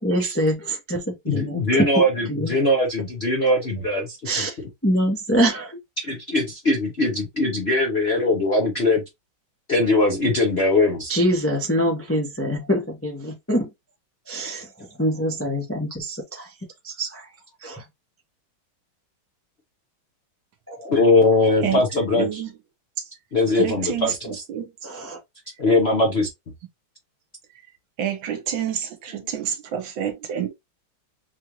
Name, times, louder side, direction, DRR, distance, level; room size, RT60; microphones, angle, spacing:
voice 1, 0.0-1.9 2.3-2.5 4.2-4.6 4.8-5.8 11.1-13.7 14.3-14.7 15.0-16.5 16.8-17.3 17.6-17.8 20.7-20.9 24.8-25.2, equal, 15° left, 0.4 m, -24 dB
voice 2, 1.3-4.5 6.0-9.0 9.7-11.1 20.8-22.4 23.3-24.4 25.6-26.3, left 2 dB, 55° left, 0.7 m, -21 dB
voice 3, 21.6-22.5 23.0-23.1 23.5-24.7 28.0-30.5, right 9 dB, 70° right, 1.5 m, -28 dB
4.2 x 2.5 x 3.0 m
omnidirectional pair, 2.3 m